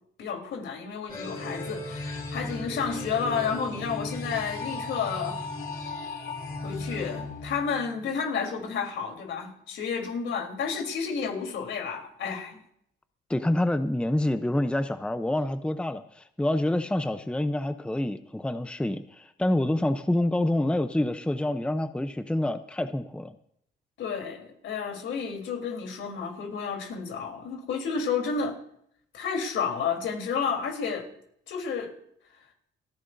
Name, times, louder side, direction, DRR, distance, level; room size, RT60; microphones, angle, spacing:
voice 1, 0.2-5.4 6.6-12.6 24.0-28.6 29.1-31.1 31.5-31.9, left 6 dB, 75° left, 2 dB, 3.7 m, -31 dB
sound 1, 1.1-8.1, left 2 dB, 45° left, 5.4 m, -36 dB
voice 2, 13.3-23.3, left 1 dB, 5° left, 10 dB, 0.7 m, -27 dB
29.5 x 11.0 x 2.7 m, 0.69 s
cardioid pair, 90°, 20 cm